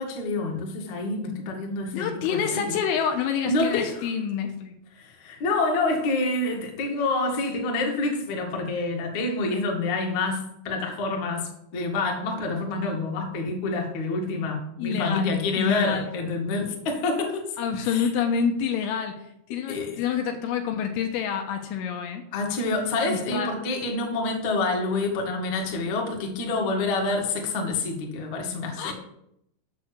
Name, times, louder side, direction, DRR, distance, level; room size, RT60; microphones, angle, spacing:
voice 1, 0.0-2.7 3.4-4.0 5.0-17.5 17.8-18.1 19.7-20.0 22.3-28.9, left 3 dB, 55° left, 1 dB, 2.2 m, -27 dB
voice 2, 1.9-4.8 14.8-16.1 17.6-19.2 19.5-22.2 23.1-23.5 28.8-28.9, left 7 dB, 80° left, 4 dB, 3.1 m, -27 dB
7.4 x 6.3 x 7.4 m, 0.76 s
omnidirectional pair, 5.7 m